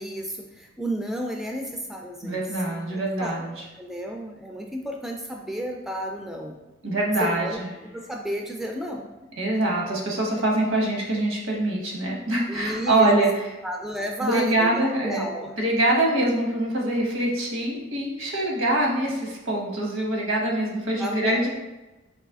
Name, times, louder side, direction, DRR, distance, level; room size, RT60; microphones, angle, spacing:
voice 1, 0.0-2.8 3.2-3.4 3.8-6.6 7.2-7.6 7.9-9.1 12.5-13.2 13.6-15.5 21.0-21.5, equal, ahead, 1 dB, 0.3 m, -32 dB
voice 2, 2.2-3.5 6.8-7.7 9.4-13.4 14.2-15.3 15.6-21.5, right 1 dB, 85° right, -1 dB, 1.0 m, -24 dB
4.0 x 2.8 x 3.5 m, 1.0 s
head